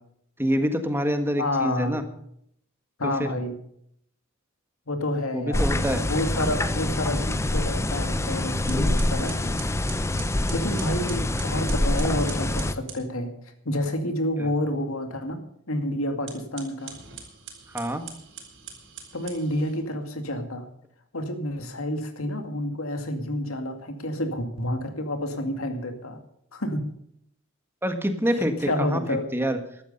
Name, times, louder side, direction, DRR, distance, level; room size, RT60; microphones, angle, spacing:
voice 1, 0.4-2.0 3.2-3.3 5.3-6.0 14.4-14.5 17.7-18.0 27.8-29.6, equal, 10° right, 7 dB, 1.6 m, -26 dB
voice 2, 1.4-2.0 3.0-3.6 4.9-5.7 6.0-9.6 10.5-13.3 13.7-15.4 15.7-17.0 19.1-20.7 21.1-26.2 26.5-27.0 28.3-29.3, left 1 dB, 80° left, 6 dB, 2.3 m, -29 dB
sound 1, 5.5-12.7, left 1 dB, 15° left, 0.6 m, -26 dB
sound 2, 8.7-13.1 16.1-19.8, right 7 dB, 60° right, 4.0 m, -43 dB
14.5 x 12.0 x 5.4 m, 0.71 s
head